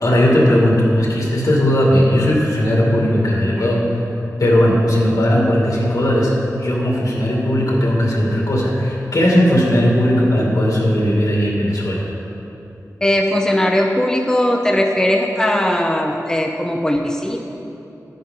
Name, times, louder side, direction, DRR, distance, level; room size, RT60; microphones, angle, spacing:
voice 1, 0.0-4.0 4.4-12.0, equal, 70° left, -3 dB, 2.4 m, -17 dB
voice 2, 13.0-17.4, left 1 dB, 10° left, 1 dB, 0.7 m, -18 dB
11.0 x 10.0 x 3.8 m, 3.0 s
wide cardioid pair, 75°, 6 cm